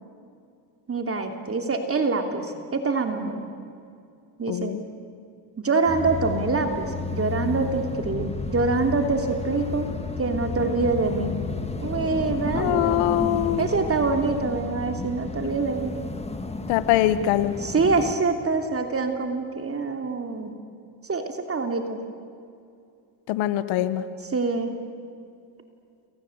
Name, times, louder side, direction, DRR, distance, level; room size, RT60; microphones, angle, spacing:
voice 1, 0.9-3.4 4.4-4.7 5.6-9.9 10.2-11.4 11.8-13.0 13.6-15.9 17.6-20.5 21.1-22.0 24.3-24.7, right 4 dB, 30° right, 5 dB, 3.0 m, -25 dB
voice 2, 4.5-4.8 12.6-13.7 16.7-17.5 23.3-24.0, left 13 dB, 80° left, 13 dB, 1.4 m, -23 dB
sound 1, 5.9-18.1, left 4 dB, 15° left, 2.3 m, -32 dB
29.0 x 25.5 x 8.1 m, 2.4 s
supercardioid pair, 90°, 46 cm